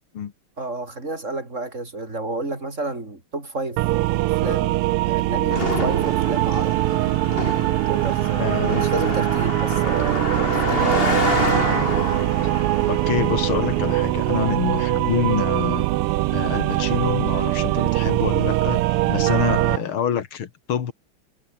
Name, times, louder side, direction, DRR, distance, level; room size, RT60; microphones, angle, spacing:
voice 1, 0.6-3.8 4.2-6.8 7.9-11.1 19.5-19.8, right 2 dB, 30° right, 5.1 m, -31 dB
sound 1, 3.8-19.8, right 18 dB, 85° right, 1.5 m, -22 dB
Car passing by, 5.5-15.1, left 3 dB, 25° left, 2.5 m, -28 dB
voice 2, 8.4-8.8 12.5-15.9 16.3-20.9, left 8 dB, 70° left, 2.5 m, -26 dB
omnidirectional pair, 2.4 m